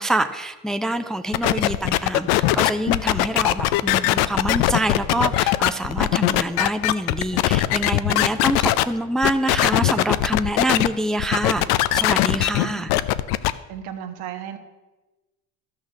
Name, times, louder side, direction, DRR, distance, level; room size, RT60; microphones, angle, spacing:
voice 1, 0.0-12.9, right 1 dB, ahead, 7 dB, 0.5 m, -26 dB
sound 1, 1.3-8.8 9.2-10.9 11.2-13.5, left 15 dB, 75° left, 0.6 m, -20 dB
voice 2, 13.7-14.6, right 10 dB, 75° right, 6 dB, 1.4 m, -34 dB
12.5 x 6.5 x 6.3 m, 1.1 s
supercardioid pair, 90°, 38 cm